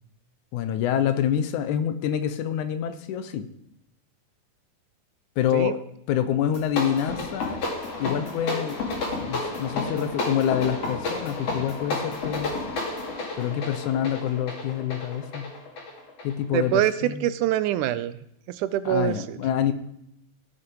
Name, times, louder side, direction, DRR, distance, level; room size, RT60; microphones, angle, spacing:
voice 1, 0.5-3.5 5.4-5.8 6.1-7.7 8.0-8.9 9.1-12.6 13.4-15.5 16.2-17.3 18.9-19.7, left 10 dB, 75° left, 11 dB, 2.0 m, -26 dB
sound 1, 6.4-16.8, left 3 dB, 55° left, 3.2 m, -31 dB
voice 2, 16.5-18.2 18.5-19.4, right 13 dB, 80° right, 14 dB, 1.9 m, -25 dB
16.0 x 6.0 x 4.7 m, 0.76 s
omnidirectional pair, 3.7 m